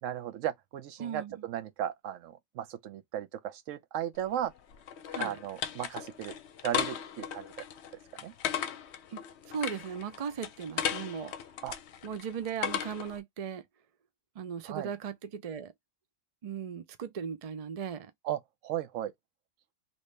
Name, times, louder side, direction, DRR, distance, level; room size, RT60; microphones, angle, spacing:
voice 1, 0.0-4.5 5.2-6.3 6.6-7.7 8.2-8.3 11.6-11.8 14.7-14.9 18.2-19.1, right 11 dB, 85° right, 1.0 m, -36 dB
voice 2, 1.0-1.3 5.1-5.4 9.1-11.3 12.0-13.6 14.4-15.7 16.4-18.1, right 7 dB, 55° right, 0.4 m, -37 dB
sound 1, 4.2-13.2, left 9 dB, 65° left, 0.8 m, -37 dB
3.0 x 2.7 x 3.2 m
omnidirectional pair, 1.3 m